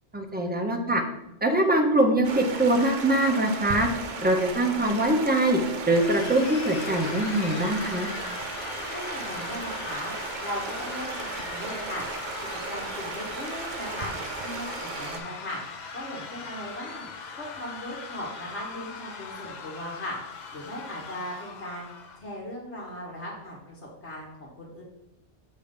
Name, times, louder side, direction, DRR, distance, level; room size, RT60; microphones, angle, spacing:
voice 1, 0.1-1.0 1.4-3.9 4.2-5.6 5.9-8.1, right 1 dB, 15° right, 2 dB, 0.4 m, -23 dB
Stream, 2.2-15.2, right 4 dB, 50° right, 0.7 m, -36 dB
sound 1, 5.9-22.2, left 5 dB, 50° left, 0.6 m, -40 dB
voice 2, 8.8-10.1 10.4-12.0 12.5-14.1 14.4-15.6 15.9-17.1 17.4-20.2 20.5-21.9 22.2-24.8, left 1 dB, 65° left, -4 dB, 1.5 m, -38 dB
6.7 x 3.2 x 5.1 m, 0.90 s
omnidirectional pair, 1.2 m